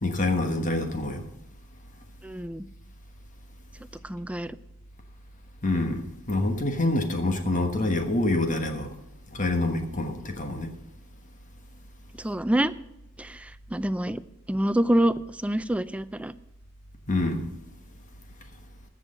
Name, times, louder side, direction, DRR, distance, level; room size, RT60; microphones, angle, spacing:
voice 1, 0.0-1.2 5.6-8.9 9.3-10.7 17.1-17.5, left 2 dB, 35° left, 1.3 m, -26 dB
voice 2, 2.2-2.7 4.0-4.6 12.2-12.7 13.2-14.2 14.5-16.3, right 1 dB, 5° right, 0.3 m, -26 dB
15.0 x 6.3 x 6.5 m
head